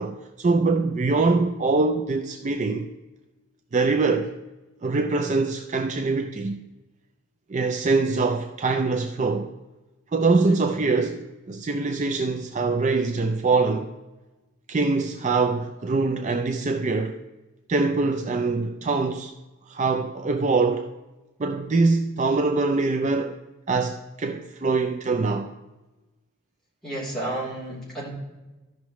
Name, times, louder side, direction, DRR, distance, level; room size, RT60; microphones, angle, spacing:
voice 1, 0.0-2.9 3.7-4.4 4.8-6.6 7.5-9.5 10.1-13.9 14.7-17.2 17.7-19.3 19.7-20.9 21.4-23.4 23.7-25.5, right 3 dB, 35° right, 0.4 m, -23 dB
voice 2, 10.2-10.6 26.8-28.1, right 1 dB, ahead, 3.4 m, -32 dB
14.0 x 5.9 x 3.1 m
head